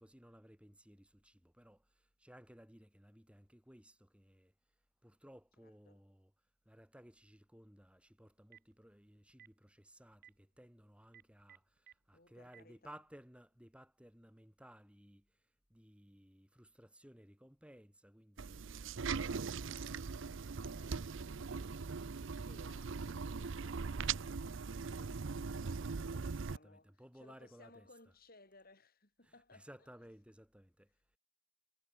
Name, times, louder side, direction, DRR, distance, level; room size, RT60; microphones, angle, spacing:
voice 1, 0.0-4.5 5.0-6.3 6.7-18.8 25.8-27.9 29.2-31.2, equal, 5° right, 3.4 m, -59 dB
voice 2, 5.6-6.0 12.1-13.0 19.6-29.9, left 2 dB, 45° left, 6.4 m, -64 dB
Telephone, 8.3-8.7 9.3-9.5 10.1-10.3 11.0-11.9 12.4-12.6, right 10 dB, 45° right, 4.9 m, -58 dB
sound 1, 18.4-26.6, right 5 dB, 60° right, 0.6 m, -40 dB
head